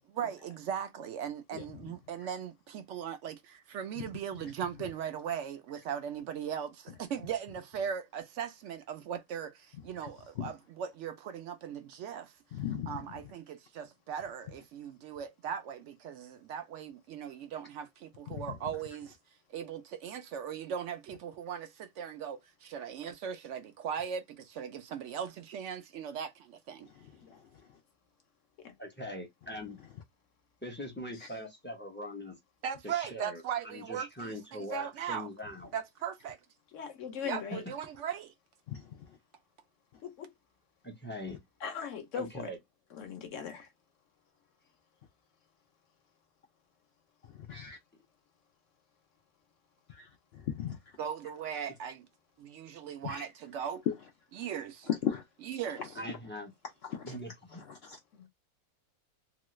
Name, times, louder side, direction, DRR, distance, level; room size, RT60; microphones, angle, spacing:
voice 1, 0.1-12.3 12.9-19.2 19.5-26.9 32.6-35.3 35.7-36.4 37.2-38.3 51.0-52.1 52.4-53.8 54.3-54.9 55.4-56.0, right 8 dB, 70° right, 0.7 m, -38 dB
voice 2, 12.5-12.9 18.3-18.4 38.7-38.8 47.5-47.8 49.9-50.1 50.3-50.8 53.0-53.3 53.9-54.0 54.9-55.2 56.9-57.2 57.7-58.0, left 9 dB, 90° left, 0.5 m, -34 dB
voice 3, 28.8-29.8 30.6-32.4 32.8-35.7 40.8-41.4 42.2-42.6 56.0-56.5 57.0-57.6, equal, 15° left, 0.4 m, -42 dB
voice 4, 36.7-37.6 40.0-40.3 41.6-42.5 42.9-43.7 58.1-58.3, left 7 dB, 60° left, 0.9 m, -40 dB
3.0 x 2.3 x 2.9 m
omnidirectional pair, 1.6 m